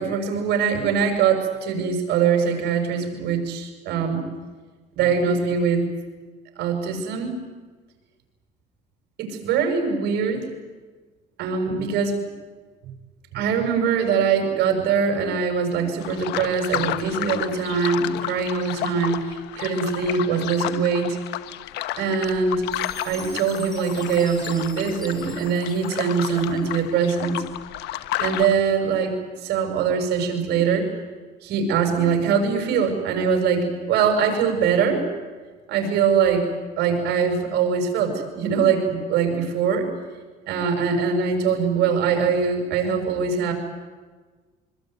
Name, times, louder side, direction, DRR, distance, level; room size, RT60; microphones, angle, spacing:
voice 1, 0.0-4.2 4.9-5.8 6.6-7.4 9.2-10.5 11.4-12.2 13.3-21.2 22.0-22.7 23.0-27.4 28.2-29.1 29.4-30.9 31.4-35.1 35.7-36.4 36.8-39.9 40.5-43.5, right 6 dB, 80° right, 5 dB, 6.9 m, -22 dB
sound 1, 16.0-28.5, left 14 dB, 85° left, 1.4 m, -32 dB
Chime, 22.7-27.0, equal, 5° left, 7.6 m, -44 dB
25.0 x 25.0 x 9.3 m, 1.4 s
cardioid pair, 110°, 17 cm